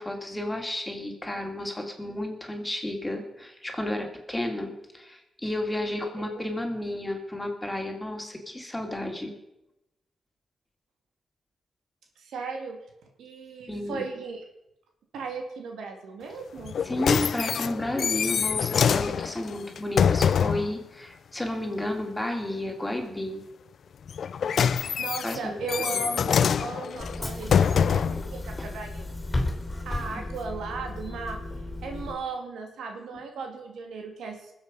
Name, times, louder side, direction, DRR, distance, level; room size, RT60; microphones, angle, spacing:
voice 1, 0.0-9.3 13.7-14.0 16.8-23.4 25.2-25.6 25.9-26.0 28.6-28.7, left 1 dB, 15° left, 3 dB, 3.1 m, -32 dB
voice 2, 12.2-12.8 13.2-14.5 15.1-16.8 25.0-29.0 29.9-31.4 31.8-34.5, right 4 dB, 90° right, 3 dB, 2.1 m, -36 dB
sound 1, 16.6-20.7 24.1-28.3 29.0-29.1, left 7 dB, 70° left, 0.4 m, -25 dB
Bus / Engine, 27.0-32.1, left 2 dB, 30° left, 2.9 m, -34 dB
20.5 x 7.7 x 5.4 m, 0.88 s
cardioid pair, 60°, 0 cm